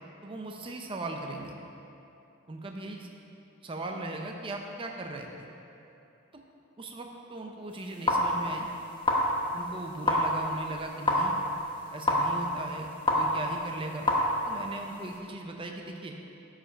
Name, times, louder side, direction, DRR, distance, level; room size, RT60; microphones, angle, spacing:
voice 1, 0.2-1.6 2.5-3.1 3.6-5.5 6.3-6.4 6.8-8.7 9.5-11.4 11.9-14.1 14.5-16.1, right 2 dB, 25° right, 2 dB, 0.5 m, -38 dB
sound 1, 7.7-15.2, left 1 dB, 25° left, 1.1 m, -29 dB
12.5 x 5.0 x 5.1 m, 2.9 s
head